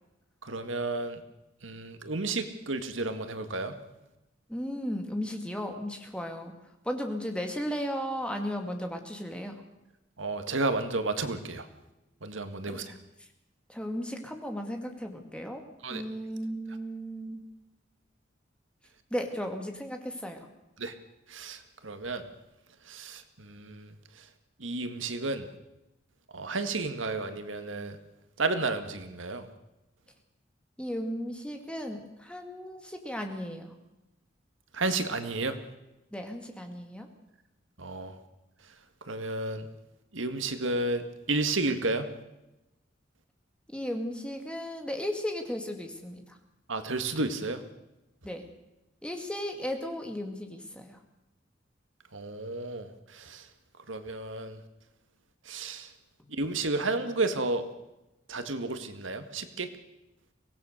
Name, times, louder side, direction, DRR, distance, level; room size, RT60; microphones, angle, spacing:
voice 1, 0.4-1.2 1.6-3.8 10.2-11.7 12.2-12.9 15.8-16.0 20.8-20.9 21.3-22.2 22.9-23.9 24.6-25.5 26.3-28.0 28.4-29.5 34.7-35.6 37.8-38.2 39.1-39.7 40.1-42.1 46.7-47.6 52.1-53.5 53.9-54.6 55.5-55.9 56.3-57.6 58.3-59.7, right 3 dB, 85° right, 9 dB, 1.9 m, -32 dB
voice 2, 4.5-6.5 6.8-9.5 12.7-13.0 13.7-15.6 15.9-17.4 19.1-20.5 30.8-33.7 36.1-37.1 43.7-46.4 48.2-48.5 49.0-51.0, equal, 5° left, 4 dB, 2.3 m, -35 dB
24.5 x 18.0 x 6.6 m, 0.94 s
head